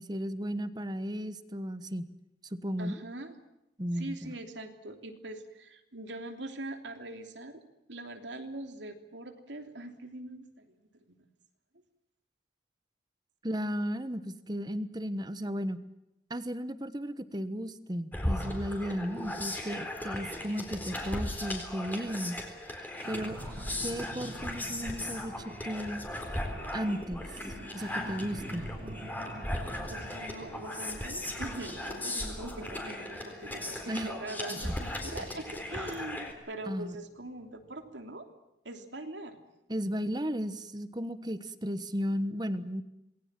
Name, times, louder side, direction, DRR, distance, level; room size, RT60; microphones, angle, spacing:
voice 1, 0.0-2.1 2.5-3.0 3.8-4.3 13.4-15.8 16.3-22.4 23.1-23.4 23.8-26.0 26.7-27.3 27.7-28.7 33.9-34.1 34.6-34.7 36.6-36.9 39.7-42.8, equal, 25° right, 13 dB, 1.2 m, -35 dB
voice 2, 2.8-3.3 3.9-7.6 7.9-11.2 29.9-38.3 38.6-39.4, right 2 dB, 85° right, 6 dB, 3.2 m, -42 dB
sound 1, 18.1-36.3, left 1 dB, 10° left, 4.0 m, -37 dB
sound 2, 22.9-38.1, right 1 dB, 55° right, 2.3 m, -48 dB
27.0 x 21.0 x 7.6 m, 0.90 s
head